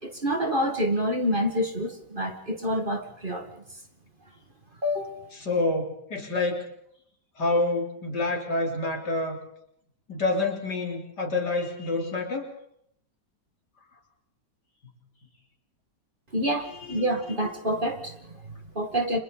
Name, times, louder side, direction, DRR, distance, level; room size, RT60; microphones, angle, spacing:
voice 1, 0.0-3.5 4.8-5.2 16.3-19.2, equal, 30° right, 4 dB, 2.1 m, -28 dB
voice 2, 5.4-6.6 7.4-9.4 10.1-12.5 16.7-17.0, left 2 dB, 70° left, 0 dB, 4.4 m, -27 dB
30.0 x 26.0 x 4.1 m, 0.71 s
omnidirectional pair, 1.8 m